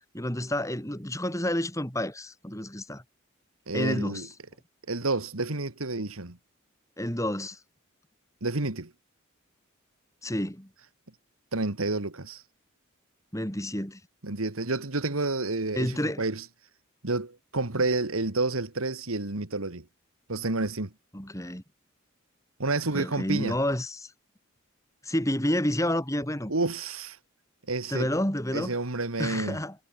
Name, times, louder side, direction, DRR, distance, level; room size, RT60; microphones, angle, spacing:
voice 1, 0.1-3.0 3.7-4.3 7.0-7.6 10.2-10.7 13.3-14.0 15.7-16.2 21.1-21.6 22.9-24.1 25.0-26.5 27.9-28.7 29.2-29.7, left 1 dB, 15° left, 4.9 m, -29 dB
voice 2, 3.7-4.3 4.9-6.4 8.4-8.9 11.5-12.4 14.2-16.4 17.0-19.8 20.3-20.9 22.6-23.6 26.5-27.2 27.7-28.1 28.5-29.6, right 2 dB, 90° right, 2.1 m, -29 dB
head